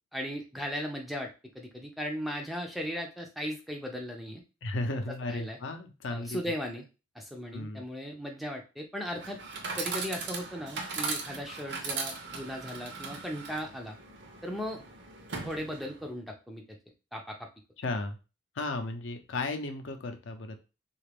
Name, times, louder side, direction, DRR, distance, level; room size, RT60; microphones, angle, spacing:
voice 1, 0.1-4.4 5.1-5.6 6.1-6.9 7.1-9.4 9.8-14.0 14.4-14.8 15.4-16.6 17.1-17.4, equal, ahead, 1 dB, 0.4 m, -37 dB
voice 2, 4.6-6.4 7.5-7.8 17.8-18.2 18.6-20.6, left 2 dB, 70° left, 6 dB, 0.5 m, -34 dB
Chatter / Coin (dropping), 9.1-16.1, right 4 dB, 55° right, 0.6 m, -38 dB
3.2 x 2.4 x 3.3 m, 0.31 s
head